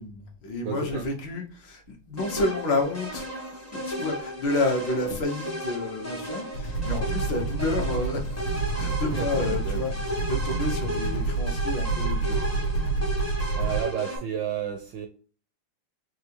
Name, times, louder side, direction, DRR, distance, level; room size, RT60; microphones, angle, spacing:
voice 1, 0.0-3.5 3.9-9.9 10.3-12.6 13.4-13.6, left 2 dB, 65° left, 1.7 m, -30 dB
voice 2, 0.6-1.1 9.1-9.9 13.6-15.1, right 9 dB, 75° right, 1.1 m, -32 dB
sound 1, 2.2-14.2, equal, 20° left, 0.4 m, -35 dB
Mutant Chase (Alex Chaves), 6.5-13.8, right 3 dB, 80° left, 1.9 m, -28 dB
4.9 x 3.0 x 2.9 m
omnidirectional pair, 2.4 m